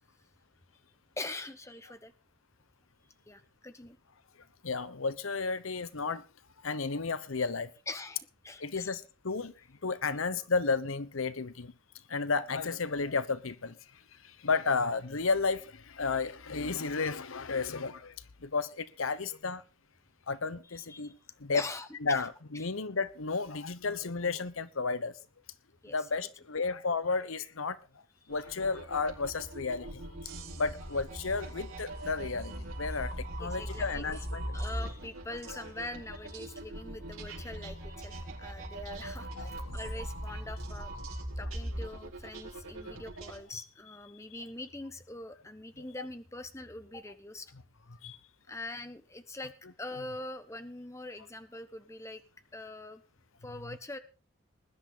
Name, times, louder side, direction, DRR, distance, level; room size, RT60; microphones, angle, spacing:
voice 1, 1.2-2.1 3.3-4.0 7.9-8.9 20.9-21.1 21.5-22.3 22.5-22.7 25.8-25.9 33.4-34.3 34.5-40.9 41.4-47.5 48.5-49.5 49.8-52.2 52.5-53.0 53.4-54.0, left 2 dB, 15° left, 1.1 m, -43 dB
voice 2, 4.6-6.2 6.6-7.7 8.6-11.7 12.1-13.8 14.2-18.2 18.4-19.6 20.3-21.6 22.0-25.1 25.9-27.8 28.3-30.0 30.6-34.6 35.5-35.6 39.4-39.8 42.8-43.0 48.0-48.2, left 4 dB, 80° left, 1.0 m, -33 dB
sound 1, 28.3-43.4, right 1 dB, 85° right, 4.6 m, -40 dB
20.0 x 11.0 x 4.0 m
head